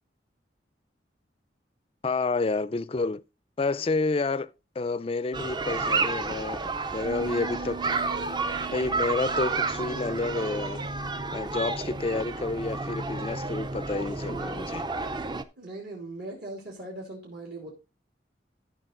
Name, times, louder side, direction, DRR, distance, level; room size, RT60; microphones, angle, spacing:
voice 1, 2.0-3.2 3.6-4.5 4.8-8.0 8.7-10.8 11.3-14.9, left 3 dB, 30° left, 0.4 m, -29 dB
sound 1, 5.3-15.4, right 3 dB, 25° right, 0.5 m, -31 dB
Bass guitar, 7.0-13.3, right 6 dB, 75° right, 2.3 m, -44 dB
voice 2, 15.6-17.7, right 2 dB, 60° right, 2.8 m, -39 dB
13.5 x 5.4 x 3.8 m
head